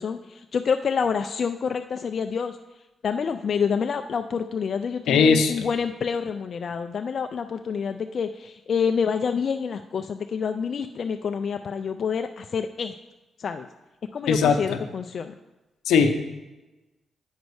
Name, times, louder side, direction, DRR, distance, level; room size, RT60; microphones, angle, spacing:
voice 1, 0.0-2.6 3.0-12.9 13.4-13.7 14.1-15.3, left 6 dB, 60° left, 7 dB, 0.3 m, -27 dB
voice 2, 5.1-5.6 14.3-14.6 15.9-16.1, left 5 dB, 85° left, 7 dB, 0.7 m, -18 dB
8.1 x 5.2 x 4.7 m, 1.1 s
cardioid pair, 60°, 0 cm